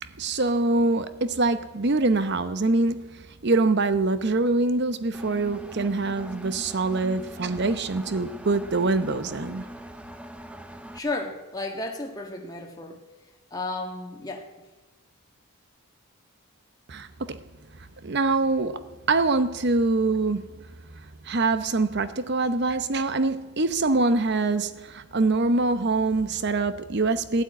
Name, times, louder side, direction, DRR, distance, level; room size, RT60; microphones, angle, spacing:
voice 1, 0.0-9.7 16.9-17.4 18.0-20.7 20.9-27.4, right 3 dB, 50° right, 0.8 m, -24 dB
Engine, 5.1-11.0, right 1 dB, 5° right, 0.6 m, -41 dB
voice 2, 10.9-13.0 13.5-14.5, left 2 dB, 15° left, 1.6 m, -33 dB
15.5 x 8.1 x 9.3 m
head